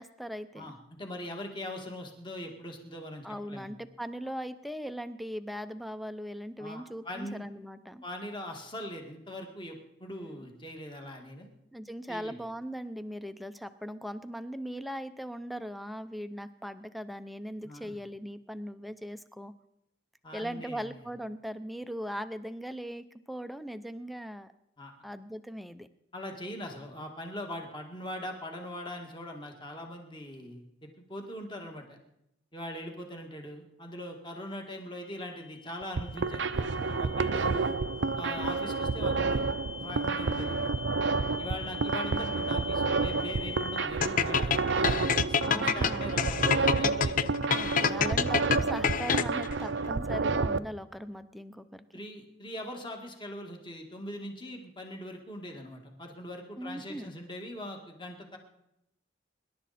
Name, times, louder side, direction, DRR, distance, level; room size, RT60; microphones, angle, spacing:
voice 1, 0.0-0.7 3.2-8.0 10.1-10.5 11.7-19.5 20.3-24.5 25.0-25.9 45.4-46.1 47.5-51.8 56.6-57.2, equal, ahead, 10 dB, 0.6 m, -39 dB
voice 2, 0.6-3.7 6.6-7.5 8.0-11.5 12.1-12.4 17.6-17.9 20.2-21.0 24.8-24.9 26.1-32.0 32.5-37.8 38.2-39.5 39.8-40.7 41.4-47.3 50.1-50.3 51.9-58.4, left 1 dB, 25° left, 2 dB, 2.0 m, -41 dB
sound 1, 35.0-43.9, left 5 dB, 85° left, 0.7 m, -43 dB
sound 2, 35.8-50.6, right 4 dB, 70° right, 0.6 m, -30 dB
sound 3, 44.0-49.5, left 6 dB, 45° left, 0.5 m, -27 dB
25.5 x 11.5 x 4.2 m, 0.82 s
head